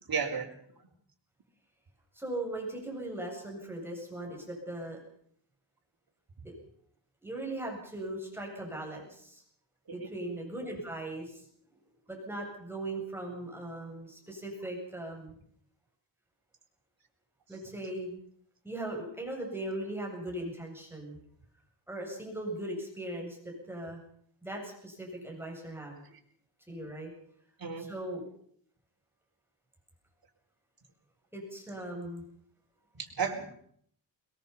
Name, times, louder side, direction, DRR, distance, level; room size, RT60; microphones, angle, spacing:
voice 1, 0.0-0.5 10.0-10.1 26.1-26.2 27.6-27.9 32.9-33.5, right 6 dB, 50° right, 2 dB, 4.7 m, -33 dB
voice 2, 2.1-5.0 6.4-6.5 7.2-9.4 9.9-11.4 12.1-15.3 17.5-18.2 18.6-21.2 21.9-24.0 24.4-26.0 26.7-27.1 27.8-28.3 31.3-32.2, right 1 dB, 5° right, -1 dB, 8.0 m, -39 dB
22.0 x 21.5 x 5.7 m, 0.63 s
wide cardioid pair, 110°, 45 cm